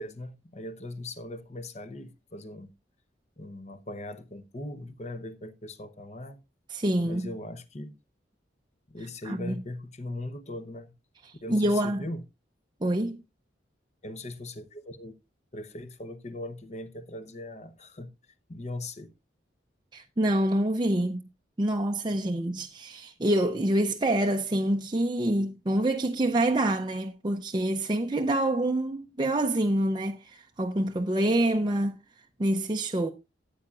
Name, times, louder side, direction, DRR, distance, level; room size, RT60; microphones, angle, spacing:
voice 1, 0.0-2.7 3.4-6.4 7.0-7.9 8.9-10.9 11.4-12.2 14.0-15.1 15.5-18.1 18.5-19.1, left 1 dB, 40° left, 0.9 m, -39 dB
voice 2, 6.7-7.3 9.2-9.6 11.5-12.1 12.8-13.2 19.9-21.2 21.6-32.0 32.4-33.1, right 1 dB, 25° right, 0.6 m, -26 dB
14.5 x 8.5 x 2.5 m
head